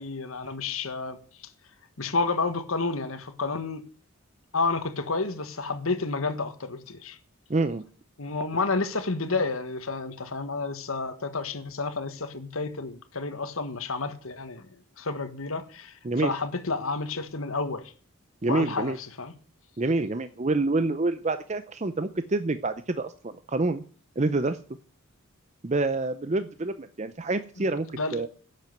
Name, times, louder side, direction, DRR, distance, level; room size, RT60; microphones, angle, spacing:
voice 1, 0.0-1.5 2.0-3.8 4.5-7.2 8.2-14.7 15.0-17.9 18.5-19.3 27.6-27.7 27.9-28.3, left 3 dB, 80° left, 1.6 m, -30 dB
voice 2, 7.5-7.8 16.0-16.3 18.4-19.0 19.8-23.8 24.2-24.6 25.6-28.3, right 2 dB, 35° right, 0.6 m, -27 dB
11.0 x 7.6 x 9.1 m
head